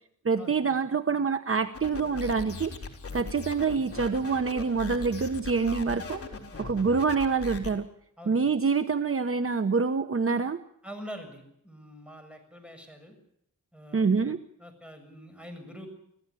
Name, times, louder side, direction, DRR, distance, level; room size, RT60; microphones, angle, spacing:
voice 1, 0.2-2.7 3.1-6.2 6.6-7.9 8.3-10.6 13.9-14.4, right 5 dB, 45° right, 9 dB, 1.1 m, -26 dB
sound 1, 1.7-7.7, left 4 dB, 45° left, 4.1 m, -39 dB
voice 2, 10.8-13.2 13.7-14.2 14.6-15.9, equal, 5° right, 6 dB, 7.2 m, -45 dB
25.5 x 16.0 x 8.4 m, 0.73 s
wide cardioid pair, 85°, 31 cm